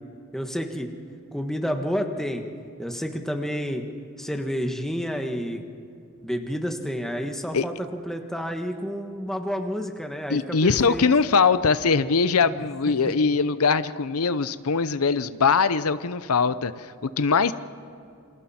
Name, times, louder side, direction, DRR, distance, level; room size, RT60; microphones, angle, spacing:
voice 1, 0.3-0.9 1.3-2.4 2.8-3.9 4.2-5.6 6.2-11.0 12.5-12.6 13.1-13.2, equal, ahead, 4 dB, 1.4 m, -30 dB
voice 2, 10.3-17.5, left 5 dB, 85° left, 14 dB, 0.7 m, -22 dB
28.5 x 26.5 x 4.4 m, 2.5 s
head